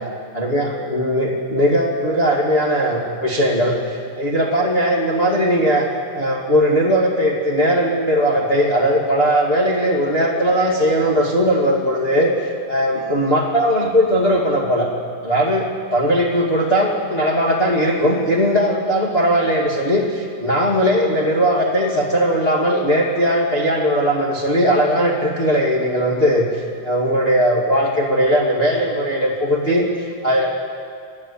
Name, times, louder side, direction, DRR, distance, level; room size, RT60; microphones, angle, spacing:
voice 1, 0.3-5.9 6.1-14.9 15.2-30.5, equal, 25° left, -3 dB, 1.4 m, -18 dB
29.5 x 11.5 x 8.4 m, 2.2 s
omnidirectional pair, 4.6 m